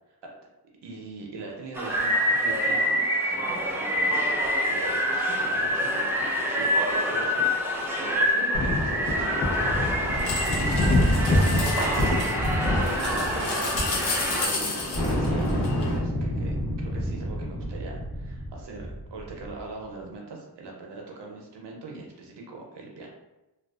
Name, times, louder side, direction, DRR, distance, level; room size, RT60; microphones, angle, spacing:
voice 1, 0.8-4.4 4.7-7.5 8.0-14.0 14.3-23.1, right 3 dB, 75° right, 0 dB, 0.6 m, -41 dB
sound 1, 1.8-14.5, equal, 5° right, 0.4 m, -26 dB
sound 2, 8.5-16.0, left 2 dB, 70° left, 0.8 m, -26 dB
sound 3, 14.9-19.6, equal, 40° left, 1.0 m, -29 dB
2.5 x 2.3 x 2.3 m, 0.99 s
cardioid pair, 50°, 42 cm